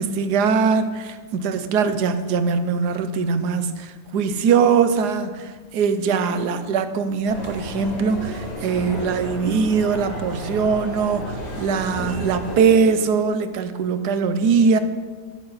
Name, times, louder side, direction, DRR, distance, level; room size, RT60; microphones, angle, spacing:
voice 1, 0.0-14.8, right 5 dB, 75° right, 11 dB, 1.3 m, -21 dB
sound 1, 7.2-12.6, equal, 80° left, 3.4 m, -32 dB
13.5 x 11.0 x 4.1 m, 1.5 s
omnidirectional pair, 1.8 m